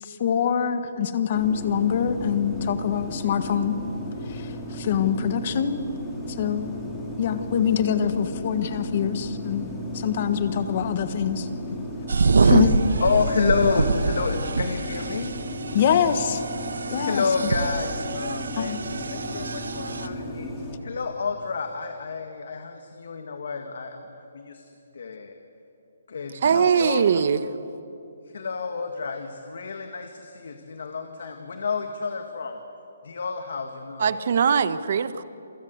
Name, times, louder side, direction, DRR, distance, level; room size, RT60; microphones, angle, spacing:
voice 1, 0.0-3.8 4.3-5.8 6.3-6.7 7.2-11.5 12.4-12.8 15.7-16.4 16.9-17.2 18.6-18.8, left 8 dB, 30° left, 11 dB, 1.4 m, -24 dB
sound 1, 1.3-20.8, equal, 5° left, 3.0 m, -35 dB
sound 2, 12.1-20.1, right 4 dB, 70° right, 1.5 m, -25 dB
voice 2, 13.0-15.3 17.0-18.8 19.1-20.5 20.8-24.6 24.9-25.4 26.1-27.3 28.3-32.6 33.0-34.2, left 4 dB, 60° left, 6 dB, 1.9 m, -29 dB
voice 3, 26.4-27.4 34.0-35.2, right 7 dB, 45° right, 14 dB, 1.1 m, -21 dB
28.5 x 24.5 x 8.1 m, 2.8 s
hypercardioid pair, 170°, 0 cm